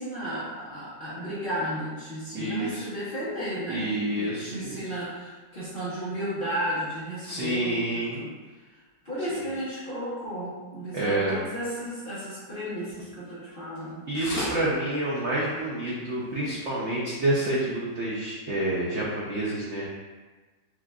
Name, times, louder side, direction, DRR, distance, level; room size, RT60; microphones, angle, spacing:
voice 1, 0.0-8.3 9.0-14.1, equal, 40° left, -10 dB, 0.8 m, -33 dB
voice 2, 2.3-2.9 3.7-4.8 7.2-8.2 9.3-9.4 10.9-11.4 14.1-19.8, right 1 dB, 70° right, -6 dB, 0.6 m, -28 dB
sound 1, 13.7-13.9 14.1-14.6 15.2-15.3 15.6-15.7 15.8-15.9 16.6-16.7, left 1 dB, 75° left, 2.0 m, -32 dB
6.1 x 2.4 x 2.3 m, 1.3 s
omnidirectional pair, 2.0 m